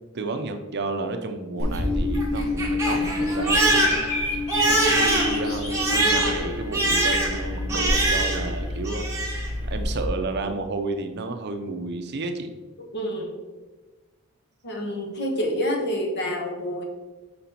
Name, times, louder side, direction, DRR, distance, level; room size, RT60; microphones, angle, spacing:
voice 1, 0.1-4.0 4.7-9.0 9.6-12.5, right 3 dB, 50° right, 6 dB, 0.6 m, -31 dB
Bird vocalization bird call bird song, 1.6-10.0, left 1 dB, 80° left, 2.1 m, -31 dB
Crying sobbing, 1.6-8.6 8.8-9.5, right 1 dB, 15° right, 1.3 m, -24 dB
voice 2, 12.8-13.3 14.6-16.8, equal, 55° left, 1 dB, 1.2 m, -28 dB
5.4 x 5.1 x 4.4 m, 1.2 s
head